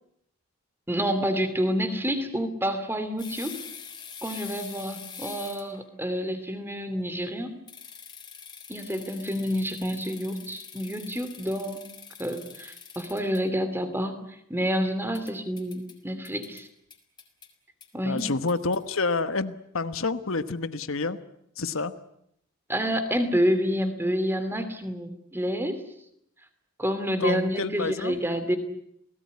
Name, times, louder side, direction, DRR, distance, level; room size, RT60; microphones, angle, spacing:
voice 1, 0.9-3.6 4.2-7.6 8.7-11.8 12.2-14.1 14.5-16.7 17.9-18.2 22.7-25.8 26.8-28.6, equal, 10° right, 10 dB, 2.9 m, -28 dB
sound 1, 3.2-5.8 7.7-13.4 15.1-15.9 16.2-16.6 16.9-17.5 17.8-17.9 18.2-18.8, left 7 dB, 20° left, 4.0 m, -44 dB
voice 2, 18.0-21.2 21.6-21.9 27.2-28.2, left 3 dB, 65° left, 11 dB, 1.2 m, -28 dB
29.5 x 18.5 x 9.6 m, 0.75 s
head